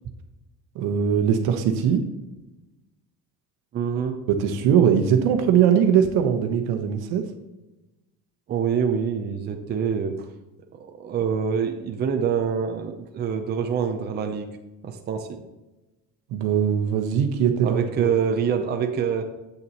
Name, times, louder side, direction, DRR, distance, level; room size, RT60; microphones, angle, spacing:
voice 1, 0.7-2.0 4.3-7.3 16.3-18.1, right 8 dB, 70° right, 6 dB, 1.1 m, -21 dB
voice 2, 3.7-4.2 8.5-10.3 11.0-14.5 14.8-15.3 17.6-19.2, right 7 dB, 25° right, 5 dB, 0.6 m, -25 dB
8.1 x 6.9 x 2.9 m, 1.0 s
cardioid pair, 145°, 39 cm